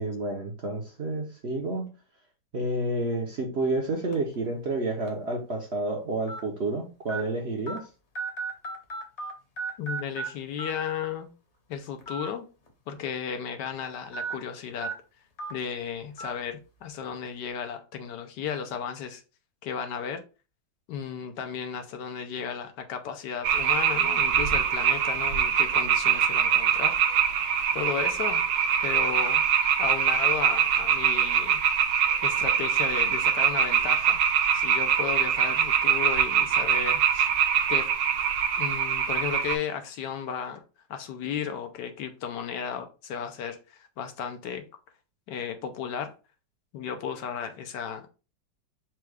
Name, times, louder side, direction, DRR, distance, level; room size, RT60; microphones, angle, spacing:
voice 1, 0.0-1.9 2.5-7.8, right 2 dB, 50° right, 0.9 m, -30 dB
sound 1, 4.1-4.3 5.1-5.2 6.3-6.4 7.1-7.2 7.7-7.8 8.1-9.3 9.6-10.3 10.6-10.7 12.0-12.3 12.7-12.8 14.1-14.3 14.8-14.9 15.4-15.5 16.2-16.3, right 4 dB, 45° left, 1.1 m, -34 dB
voice 2, 9.8-11.3 11.7-12.5 12.9-14.9 15.5-19.2 19.6-20.2 20.9-27.0 27.7-28.4 28.8-29.4 29.8-31.6 32.2-34.2 34.5-37.3 37.7-37.8 38.6-40.6 40.9-44.6 45.3-46.1 46.7-48.1, left 7 dB, 80° left, 1.3 m, -34 dB
sound 2, 23.4-39.5, right 8 dB, 90° right, 1.4 m, -24 dB
4.5 x 2.3 x 4.7 m
omnidirectional pair, 1.9 m